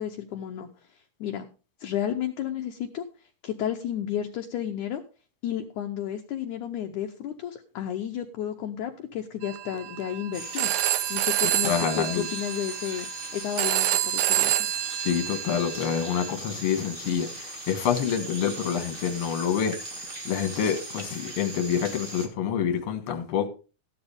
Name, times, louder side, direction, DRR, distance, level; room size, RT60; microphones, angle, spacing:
voice 1, 0.0-1.5 1.8-5.0 5.4-10.7 11.1-14.6, left 10 dB, 70° left, 2.0 m, -32 dB
Telephone, 9.4-16.3, right 14 dB, 75° right, 2.1 m, -28 dB
sound 1, 10.3-22.3, right 2 dB, 55° right, 0.6 m, -39 dB
voice 2, 11.6-12.3 15.0-19.8 20.3-23.5, left 8 dB, 45° left, 2.0 m, -27 dB
14.5 x 11.0 x 3.5 m
omnidirectional pair, 4.4 m